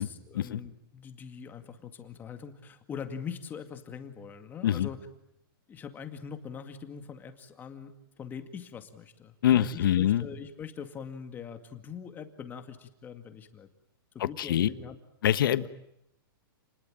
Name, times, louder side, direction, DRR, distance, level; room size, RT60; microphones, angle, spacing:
voice 1, 0.0-5.0 5.7-7.9 8.2-13.7 14.1-15.0 15.6-15.7, left 7 dB, 15° left, 7 dB, 2.1 m, -42 dB
voice 2, 9.4-10.3 14.2-14.7 15.2-15.7, left 11 dB, 65° left, 13 dB, 1.4 m, -25 dB
30.0 x 20.5 x 9.0 m, 0.81 s
hypercardioid pair, 155°, 12 cm